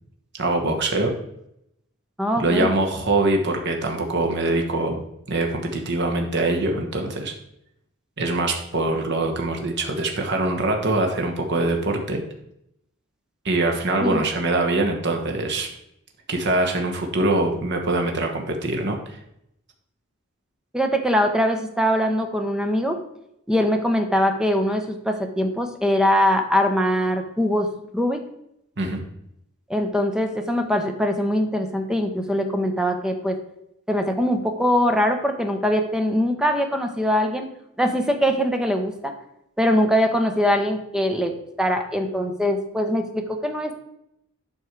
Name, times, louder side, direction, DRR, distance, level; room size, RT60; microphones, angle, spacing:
voice 1, 0.4-1.1 2.4-7.3 8.2-12.2 13.4-15.7 16.3-19.2 28.8-29.0, right 2 dB, 55° right, 3 dB, 1.1 m, -23 dB
voice 2, 2.2-2.7 14.0-14.2 20.7-23.0 23.5-27.7 27.9-28.2 29.7-33.4 33.9-37.5 37.8-39.1 39.6-43.7, equal, 5° right, 5 dB, 0.8 m, -22 dB
8.2 x 5.4 x 4.6 m, 0.79 s
head